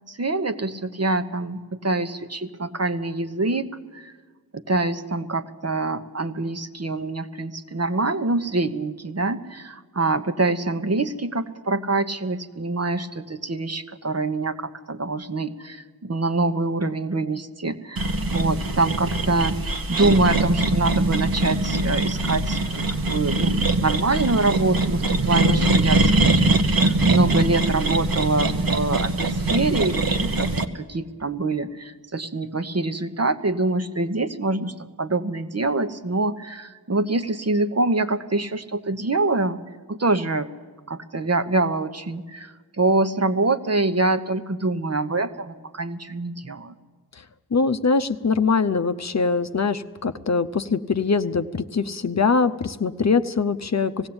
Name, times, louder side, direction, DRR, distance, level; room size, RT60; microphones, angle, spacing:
voice 1, 0.1-3.7 3.9-4.1 4.5-19.6 19.9-22.8 23.1-30.5 30.7-39.6 39.9-40.5 40.9-46.7, right 2 dB, 40° right, 8 dB, 1.1 m, -25 dB
sound 1, 18.0-30.6, right 2 dB, 65° right, 1.3 m, -22 dB
voice 2, 25.3-25.7 47.5-54.1, left 4 dB, 45° left, 10 dB, 0.7 m, -23 dB
19.0 x 16.0 x 8.8 m, 1.4 s
wide cardioid pair, 55°, 37 cm